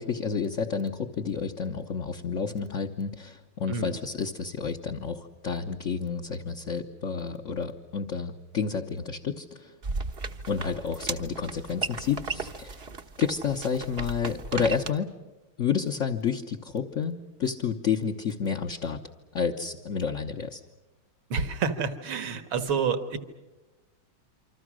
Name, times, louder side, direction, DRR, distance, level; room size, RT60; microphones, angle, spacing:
voice 1, 0.0-9.7 10.5-12.8 13.2-15.1 15.6-19.0 19.3-20.6, left 6 dB, 45° left, 2 dB, 1.1 m, -30 dB
sound 1, 9.8-14.9, right 4 dB, 40° right, 1.0 m, -35 dB
voice 2, 21.3-23.2, right 5 dB, 70° right, 9 dB, 2.3 m, -28 dB
27.5 x 25.5 x 6.3 m, 1.1 s
omnidirectional pair, 2.3 m